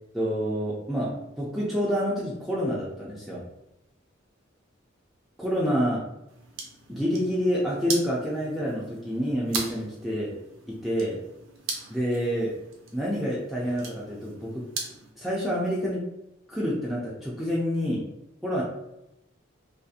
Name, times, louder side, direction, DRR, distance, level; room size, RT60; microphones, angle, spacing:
voice 1, 0.1-3.4 5.4-6.0 6.9-10.3 10.7-11.2 11.9-12.5 12.9-14.6 15.2-16.0 16.5-18.0 18.4-18.6, equal, ahead, -7 dB, 0.3 m, -28 dB
sound 1, 6.3-15.1, right 4 dB, 75° right, 0.5 m, -39 dB
2.7 x 2.4 x 2.4 m, 0.88 s
head